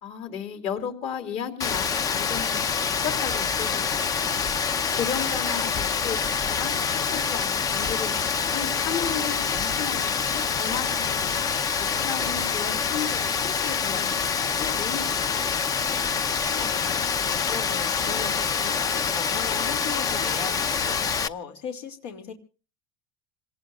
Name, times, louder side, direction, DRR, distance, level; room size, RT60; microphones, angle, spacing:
voice 1, 0.0-4.5 4.9-11.5 11.8-15.4, left 7 dB, 50° left, 6 dB, 3.2 m, -35 dB
Rain, 1.6-21.3, left 6 dB, 25° left, 0.7 m, -26 dB
voice 2, 16.5-22.3, left 6 dB, 75° left, 4 dB, 2.7 m, -38 dB
27.0 x 18.5 x 2.4 m, 0.36 s
supercardioid pair, 135°, 13 cm